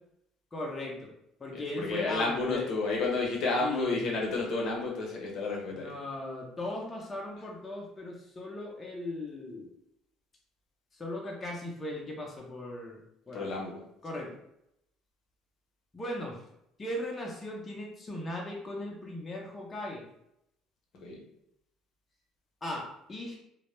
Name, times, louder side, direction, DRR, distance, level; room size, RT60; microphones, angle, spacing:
voice 1, 0.5-1.1 1.4-2.7 3.6-4.2 5.7-9.7 10.9-13.0 13.3-13.5 14.0-14.4 15.9-16.4 16.8-20.0 22.6-23.4, left 1 dB, 25° left, -2 dB, 0.5 m, -38 dB
voice 2, 1.5-5.9 13.3-13.8 21.0-21.2, left 3 dB, 60° left, -1 dB, 0.7 m, -31 dB
2.1 x 2.0 x 3.0 m, 0.79 s
supercardioid pair, 90°, 0 cm